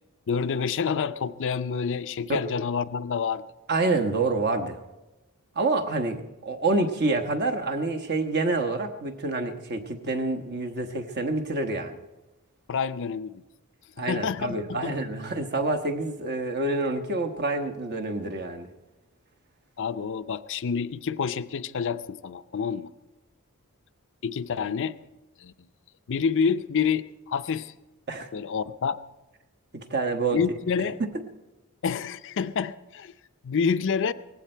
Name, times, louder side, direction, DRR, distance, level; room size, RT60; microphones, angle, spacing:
voice 1, 0.3-3.4 12.7-13.4 14.0-14.6 14.8-14.9 19.8-22.9 24.2-24.9 25.4-25.5 26.1-27.7 28.3-29.0 30.3-31.0 31.8-33.1 33.4-34.1, left 6 dB, 55° left, 13 dB, 0.5 m, -28 dB
voice 2, 3.7-4.8 5.5-12.0 14.0-18.7 28.1-28.3 29.9-30.4 31.0-31.1, right 3 dB, 50° right, 5 dB, 1.2 m, -27 dB
18.5 x 16.0 x 4.5 m, 1.0 s
head